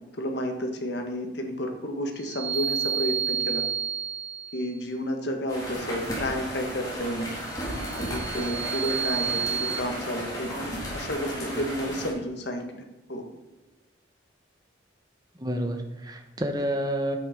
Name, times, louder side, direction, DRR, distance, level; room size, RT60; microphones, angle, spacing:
voice 1, 0.2-3.7 4.5-7.3 8.0-12.8 13.1-13.2, equal, 65° left, 3 dB, 1.7 m, -31 dB
sound 1, 2.2-4.7 7.7-9.8, right 7 dB, 75° right, 1.0 m, -30 dB
sound 2, 5.5-12.1, equal, 20° left, 3.4 m, -34 dB
voice 2, 15.4-17.2, equal, 20° right, 5 dB, 1.1 m, -30 dB
9.7 x 8.4 x 5.2 m, 1.1 s
head